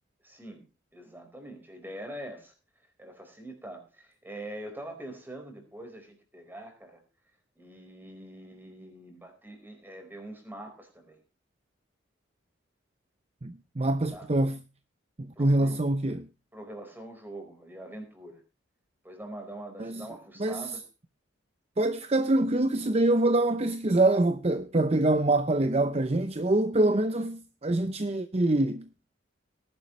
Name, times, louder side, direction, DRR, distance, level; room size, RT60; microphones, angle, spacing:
voice 1, 0.2-0.7 0.9-2.5 3.0-7.0 7.6-11.2 14.1-14.3 15.3-15.8 16.5-18.4 19.0-20.8 26.9-27.0, right 1 dB, 10° right, 4.6 m, -44 dB
voice 2, 13.4-14.6 15.2-16.3 19.8-20.1 20.4-20.7 21.8-28.8, right 2 dB, 30° right, 0.7 m, -25 dB
19.0 x 11.5 x 3.2 m
head